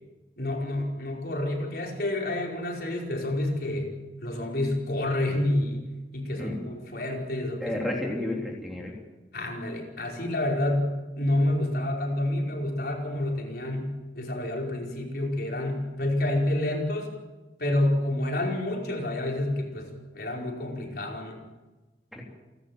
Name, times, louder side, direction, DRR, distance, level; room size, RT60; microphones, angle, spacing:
voice 1, 0.4-3.9 4.2-5.9 6.1-7.8 9.3-17.1 17.6-21.4, left 1 dB, 60° left, 0 dB, 5.1 m, -29 dB
voice 2, 7.6-9.0 22.1-22.2, left 1 dB, ahead, -1 dB, 3.5 m, -31 dB
29.5 x 13.0 x 8.9 m, 1.2 s
head